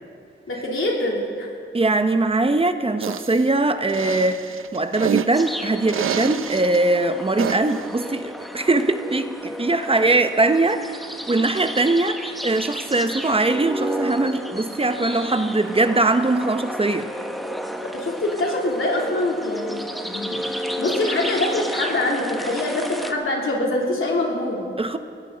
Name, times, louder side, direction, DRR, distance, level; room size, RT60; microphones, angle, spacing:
voice 1, 0.5-1.5 17.8-24.6, left 1 dB, 80° left, -2 dB, 3.1 m, -24 dB
voice 2, 1.7-17.1 24.8-25.0, right 2 dB, 25° right, 8 dB, 0.7 m, -21 dB
sound 1, 3.0-3.4 3.9-5.4 5.9-6.8 7.4-7.8, right 9 dB, 85° right, 0.5 m, -27 dB
sound 2, 5.3-23.1, equal, ahead, 1.0 m, -32 dB
20.5 x 16.5 x 3.9 m, 2.3 s
wide cardioid pair, 95°, 21 cm